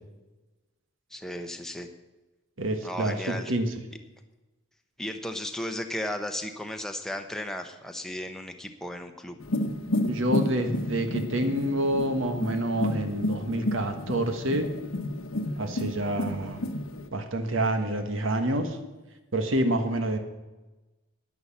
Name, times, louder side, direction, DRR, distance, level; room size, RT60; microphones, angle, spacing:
voice 1, 1.1-1.9 2.8-3.5 5.0-9.4, left 1 dB, ahead, 5 dB, 0.8 m, -35 dB
voice 2, 2.6-3.7 10.1-14.7 15.6-16.6 17.1-18.8 19.3-20.2, right 1 dB, 70° right, 7 dB, 1.4 m, -27 dB
sound 1, 9.4-17.1, left 1 dB, 80° left, 1.1 m, -31 dB
11.0 x 9.8 x 7.2 m, 1.1 s
head